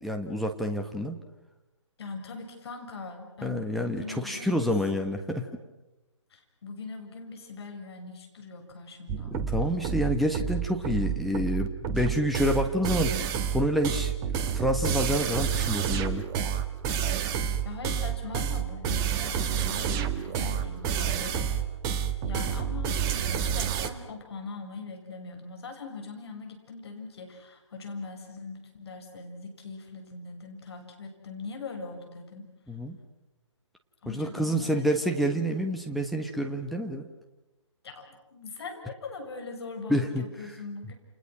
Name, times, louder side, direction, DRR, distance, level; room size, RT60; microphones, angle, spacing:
voice 1, 0.0-1.2 3.4-5.5 9.3-13.1 13.5-16.2 32.7-33.0 34.1-37.1 39.9-40.6, equal, ahead, 4 dB, 1.4 m, -28 dB
voice 2, 2.0-4.7 6.3-9.4 17.6-21.7 22.2-32.5 34.0-34.9 37.8-40.9, left 4 dB, 55° left, 4 dB, 7.0 m, -41 dB
sound 1, 9.1-23.9, right 8 dB, 20° right, 1.5 m, -29 dB
29.5 x 29.5 x 6.2 m, 1.0 s
figure-of-eight pair, 140°, 16 cm